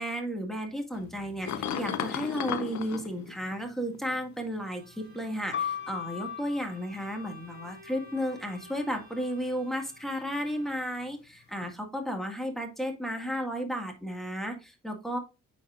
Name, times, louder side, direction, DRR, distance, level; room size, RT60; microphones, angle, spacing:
voice 1, 0.0-15.2, equal, ahead, 4 dB, 1.8 m, -33 dB
sound 1, 0.9-4.2 5.1-6.2 6.9-7.4 11.6-11.7, left 9 dB, 65° left, 0.8 m, -36 dB
Bowed string instrument, 4.6-11.2, right 2 dB, 30° right, 1.6 m, -55 dB
sound 2, 5.5-9.4 10.2-10.9, left 8 dB, 40° left, 0.5 m, -39 dB
9.2 x 4.3 x 2.4 m, 0.29 s
cardioid pair, 90°, 30 cm